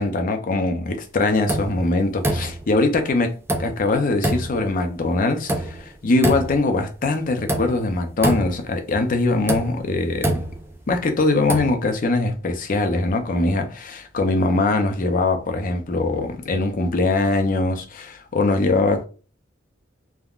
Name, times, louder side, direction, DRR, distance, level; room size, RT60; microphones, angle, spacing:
voice 1, 0.0-10.3 10.9-19.1, left 2 dB, 45° left, 0.5 m, -22 dB
sound 1, 1.5-1.8 2.2-2.8 3.5-3.8 4.2-4.6 5.5-5.8 6.2-6.7 7.5-7.8 8.2-8.7 9.5-11.0 11.4-11.7, right 1 dB, 10° right, 0.3 m, -25 dB
3.5 x 2.1 x 2.4 m
head